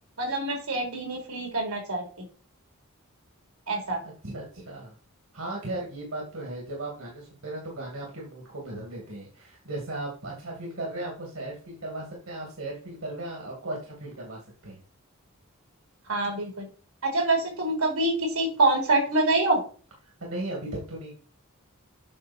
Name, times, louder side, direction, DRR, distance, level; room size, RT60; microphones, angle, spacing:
voice 1, 0.2-2.3 3.7-4.0 16.1-16.7 17.0-19.6, right 2 dB, 80° right, 1 dB, 3.7 m, -25 dB
voice 2, 4.0-4.9 5.3-14.8 20.0-21.1, right 2 dB, 65° right, -2 dB, 2.6 m, -36 dB
8.5 x 6.5 x 4.4 m, 0.40 s
head